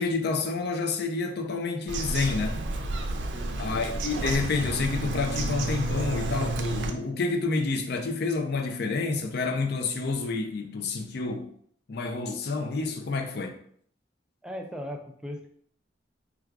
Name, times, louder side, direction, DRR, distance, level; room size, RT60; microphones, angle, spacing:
voice 1, 0.0-2.6 3.6-11.5 11.9-13.6, left 4 dB, 60° left, 0.5 m, -29 dB
Bird vocalization bird call bird song, 1.9-6.9, right 2 dB, 80° right, 0.4 m, -30 dB
voice 2, 3.3-3.8 14.4-15.5, equal, 5° right, 0.3 m, -38 dB
4.5 x 2.3 x 2.4 m
head